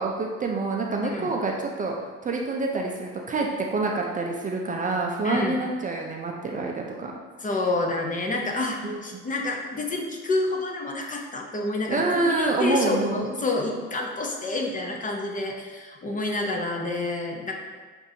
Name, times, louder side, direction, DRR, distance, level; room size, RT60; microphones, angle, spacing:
voice 1, 0.0-2.0 2.2-7.1 8.8-9.2 11.9-13.3, right 3 dB, 25° right, 0 dB, 0.5 m, -27 dB
voice 2, 5.2-5.6 7.4-17.5, left 2 dB, 25° left, 1 dB, 0.7 m, -28 dB
6.6 x 2.6 x 2.7 m, 1.4 s
supercardioid pair, 85°, 31 cm